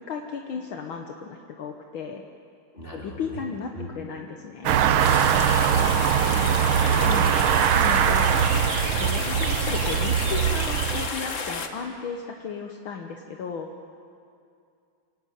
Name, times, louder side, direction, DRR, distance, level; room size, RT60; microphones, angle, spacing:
voice 1, 0.1-2.2 2.9-4.8 7.0-7.4 7.7-8.5 9.0-13.7, left 6 dB, 70° left, 3 dB, 1.9 m, -35 dB
voice 2, 2.7-3.4 3.7-3.9 5.6-6.6, left 1 dB, 25° left, -3 dB, 4.4 m, -38 dB
sound 1, 4.7-11.1, right 9 dB, 75° right, 1.6 m, -22 dB
sound 2, 5.0-11.7, left 4 dB, 40° left, 1.5 m, -31 dB
27.5 x 17.5 x 9.4 m, 2.5 s
omnidirectional pair, 2.4 m